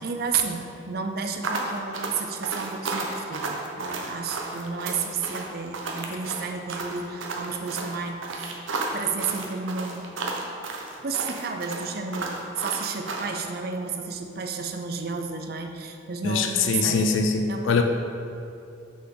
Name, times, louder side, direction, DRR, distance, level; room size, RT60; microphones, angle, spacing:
voice 1, 0.0-8.4 8.9-10.1 11.0-17.2 17.5-17.8, right 5 dB, 50° right, 5 dB, 0.5 m, -31 dB
sound 1, 1.4-13.4, right 3 dB, 75° right, 0.8 m, -32 dB
voice 2, 16.2-17.8, left 5 dB, 70° left, 5 dB, 0.4 m, -23 dB
6.3 x 5.8 x 3.8 m, 2.6 s
head